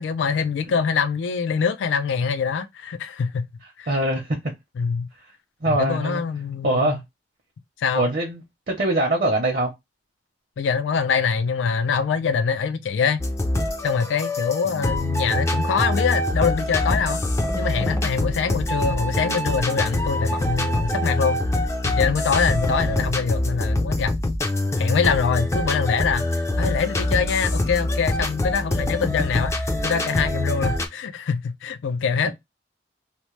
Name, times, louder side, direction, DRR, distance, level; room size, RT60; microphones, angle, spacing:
voice 1, 0.0-3.5 3.8-3.9 4.8-5.1 5.7-7.0 7.8-8.1 10.6-13.2 13.8-17.2 17.6-21.4 21.8-24.2 24.8-32.3, left 6 dB, 90° left, 0.4 m, -24 dB
voice 2, 3.9-4.5 5.6-6.2 6.6-7.0 7.9-9.7 14.6-14.9 22.8-23.1, right 1 dB, 50° right, 0.7 m, -23 dB
sound 1, 13.2-30.9, left 1 dB, 15° left, 0.4 m, -24 dB
2.9 x 2.0 x 3.1 m
head